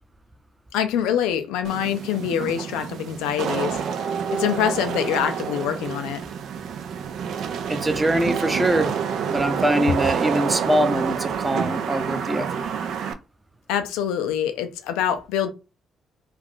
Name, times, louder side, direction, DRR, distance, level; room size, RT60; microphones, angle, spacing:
voice 1, 0.7-3.8 4.3-6.2 13.7-15.5, left 9 dB, 80° left, 0.4 m, -25 dB
Wind / Rain, 1.6-13.1, right 7 dB, 70° right, 0.4 m, -28 dB
voice 2, 7.7-8.9 9.3-12.7, right 1 dB, 20° right, 0.6 m, -23 dB
2.4 x 2.4 x 3.5 m
hypercardioid pair, 50°, 0 cm